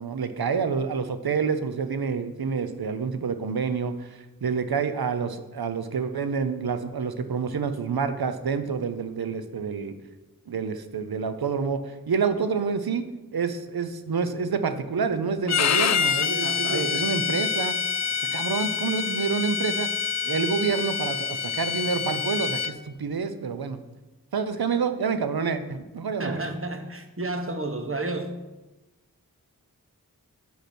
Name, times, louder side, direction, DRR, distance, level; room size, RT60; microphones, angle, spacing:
voice 1, 0.0-9.9 10.5-13.0 13.3-17.7 18.3-19.9 20.2-23.8 24.3-26.4, right 5 dB, 85° right, 0.7 m, -28 dB
Bowed string instrument, 15.5-22.7, left 6 dB, 50° left, 0.4 m, -27 dB
voice 2, 16.4-17.1 26.2-28.4, right 2 dB, 35° right, 1.1 m, -31 dB
8.1 x 7.9 x 4.4 m
wide cardioid pair, 50°, 36 cm